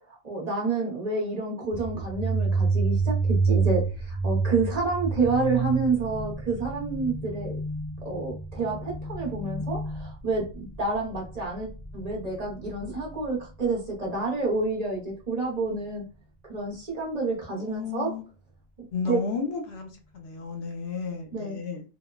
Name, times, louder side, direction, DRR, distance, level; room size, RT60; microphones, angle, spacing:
voice 1, 0.1-7.6 8.0-10.4 10.8-16.0 16.5-18.1 18.8-19.2 21.3-21.6, right 3 dB, 40° right, -3 dB, 0.8 m, -29 dB
sound 1, 1.7-13.2, right 4 dB, 45° left, 0.8 m, -29 dB
voice 2, 17.5-18.2 18.9-21.8, left 5 dB, 80° left, 3 dB, 0.9 m, -33 dB
2.9 x 2.1 x 2.3 m, 0.32 s
omnidirectional pair, 1.1 m